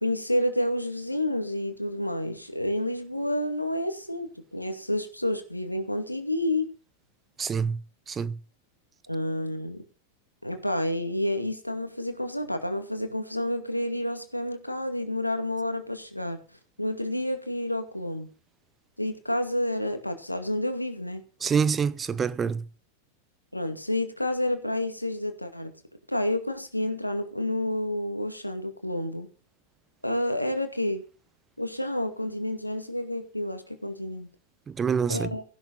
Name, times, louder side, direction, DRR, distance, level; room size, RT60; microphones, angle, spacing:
voice 1, 0.0-6.7 9.1-9.8 10.4-16.4 16.8-18.3 19.0-21.2 23.5-25.8 26.1-29.3 30.0-31.0 31.6-34.3 35.1-35.4, left 1 dB, 90° left, 2.2 m, -29 dB
voice 2, 7.4-7.8 8.1-8.4 21.4-22.6 34.7-35.3, right 6 dB, 20° right, 0.8 m, -26 dB
15.5 x 11.5 x 4.0 m
figure-of-eight pair, 90°, 0 cm